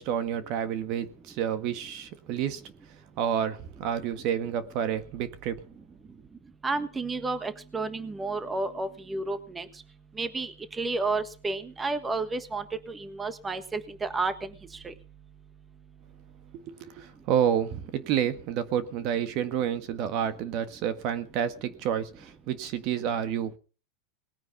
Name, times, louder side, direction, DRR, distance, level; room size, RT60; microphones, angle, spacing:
voice 1, 0.0-2.6 3.2-5.6 16.5-23.6, right 9 dB, 50° right, 1.6 m, -29 dB
voice 2, 6.6-9.7 10.2-14.3 14.8-14.9, right 3 dB, 15° right, 1.4 m, -31 dB
19.5 x 9.4 x 5.9 m
supercardioid pair, 125°, 0 cm